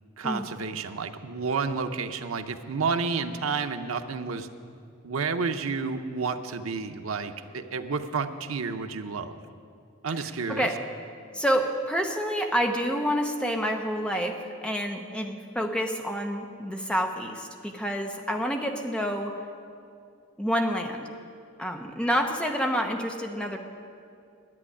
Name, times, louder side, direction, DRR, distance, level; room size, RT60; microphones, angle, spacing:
voice 1, 0.2-4.5 5.0-9.4 10.0-10.7, right 4 dB, 85° right, 7 dB, 0.7 m, -30 dB
voice 2, 11.3-19.4 20.4-21.1 21.6-23.6, equal, 5° left, 3 dB, 0.7 m, -28 dB
11.0 x 8.4 x 9.9 m, 2.3 s
head